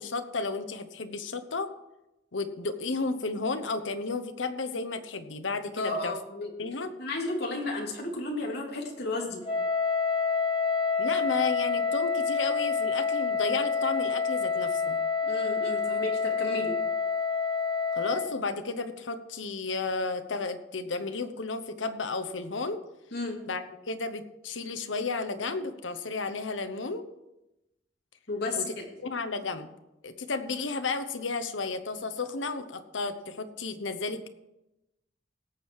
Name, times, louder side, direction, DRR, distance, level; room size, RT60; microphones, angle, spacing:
voice 1, 0.0-1.7 2.3-6.2 6.6-6.9 11.0-15.0 17.9-22.8 23.5-27.1 28.6-28.7 29.0-29.7 30.0-34.3, left 3 dB, 85° left, 9 dB, 1.0 m, -33 dB
voice 2, 5.8-6.5 7.0-9.4 15.2-16.8 23.1-23.4 28.3-28.8, left 2 dB, 60° left, -1 dB, 2.8 m, -33 dB
Wind instrument woodwind instrument, 9.4-18.3, left 5 dB, 25° left, 3.0 m, -28 dB
17.5 x 7.3 x 4.8 m, 0.94 s
head